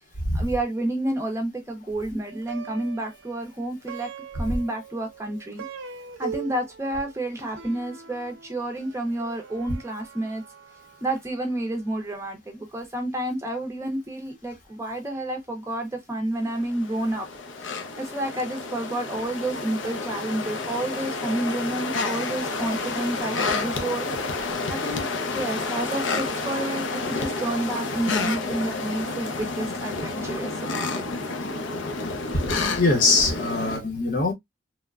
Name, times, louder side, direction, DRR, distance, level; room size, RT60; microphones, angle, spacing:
voice 1, 0.3-5.6 6.2-10.4 11.0-17.3 17.6-24.1 24.7-31.0, right 1 dB, 15° right, 0.5 m, -30 dB
Plucked string instrument, 2.3-11.7, right 7 dB, 90° right, 0.5 m, -42 dB
sound 1, 16.5-33.8, left 3 dB, 90° left, 0.6 m, -30 dB
voice 2, 32.3-34.3, left 3 dB, 45° left, 0.8 m, -23 dB
3.1 x 2.1 x 2.3 m
head